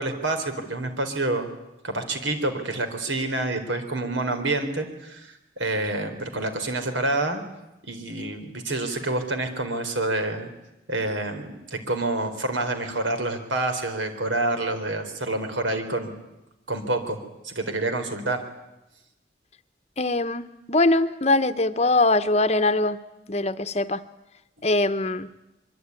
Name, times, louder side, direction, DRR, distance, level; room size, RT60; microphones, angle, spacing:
voice 1, 0.0-1.5 1.8-5.3 5.6-7.4 7.8-10.5 10.9-16.1 16.7-18.4, right 2 dB, 85° right, 7 dB, 4.1 m, -27 dB
voice 2, 20.0-23.0 23.3-24.0 24.6-25.3, left 2 dB, 35° left, 12 dB, 0.9 m, -22 dB
24.5 x 23.5 x 9.7 m, 0.93 s
head